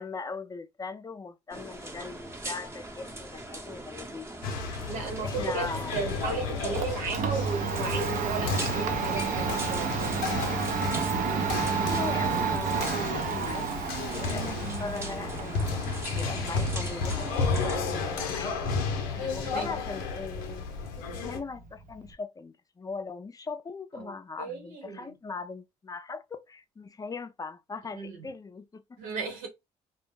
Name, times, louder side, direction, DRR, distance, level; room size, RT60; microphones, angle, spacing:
voice 1, 0.0-4.3 5.2-6.0 11.8-13.8 14.2-18.7 19.3-20.6 21.0-28.8, left 4 dB, 25° left, 0.5 m, -40 dB
sound 1, 1.5-17.8, right 1 dB, 15° right, 0.8 m, -41 dB
sound 2, 4.4-21.4, left 4 dB, 85° left, 0.6 m, -33 dB
voice 2, 4.9-10.6 14.5-14.6 19.1-19.7 24.0-24.1 24.4-25.1 27.9-28.3 29.0-29.5, right 4 dB, 80° right, 1.2 m, -35 dB
Domestic sounds home sounds, 6.3-22.1, right 6 dB, 60° right, 0.6 m, -32 dB
2.2 x 2.1 x 3.2 m
hypercardioid pair, 60°, 15 cm